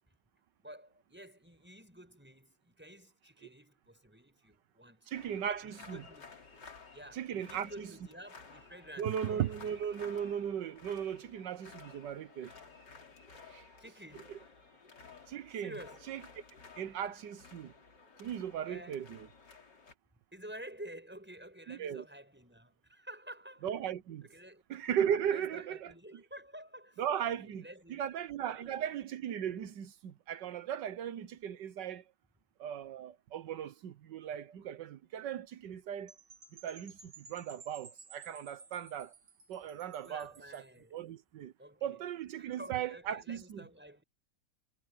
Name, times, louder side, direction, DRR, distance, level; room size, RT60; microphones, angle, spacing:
voice 1, 0.6-6.4 6.9-9.5 13.8-14.4 15.5-16.1 18.7-19.0 20.3-23.7 24.2-24.6 25.3-28.1 28.5-28.8 40.0-41.0 41.6-42.1 42.4-44.0, right 1 dB, 5° right, 7.0 m, -51 dB
sound 1, 5.1-19.9, left 4 dB, 85° left, 3.9 m, -55 dB
voice 2, 5.1-6.0 7.1-7.7 9.0-12.5 13.5-13.6 15.3-15.7 16.1-16.2 16.8-17.7 18.2-19.3 21.7-22.0 23.6-24.3 24.7-25.9 27.0-27.6 27.9-32.0 32.6-36.1 36.5-39.1 39.5-40.6 40.9-41.5 41.8-43.6, right 9 dB, 85° right, 1.6 m, -37 dB
Percussion / Wind chime, 36.1-40.8, right 5 dB, 65° right, 2.8 m, -56 dB
omnidirectional pair, 1.8 m